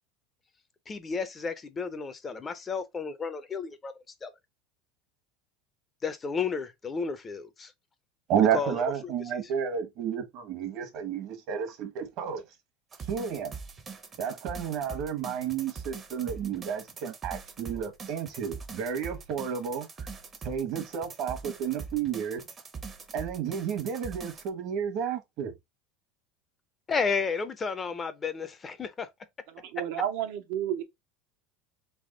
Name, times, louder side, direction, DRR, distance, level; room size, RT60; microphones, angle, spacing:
voice 1, 0.9-4.3 6.0-7.7 8.4-8.8 9.0-9.1 26.9-29.1, left 5 dB, 20° left, 0.5 m, -32 dB
voice 2, 8.3-12.4 13.1-13.5 14.2-20.1 20.4-22.4 23.1-25.5, right 8 dB, 55° right, 1.1 m, -31 dB
sound 1, 12.9-24.5, right 5 dB, 25° right, 0.7 m, -42 dB
voice 3, 29.5-30.8, right 10 dB, 70° right, 0.7 m, -31 dB
3.5 x 3.1 x 3.7 m
supercardioid pair, 140°, 0 cm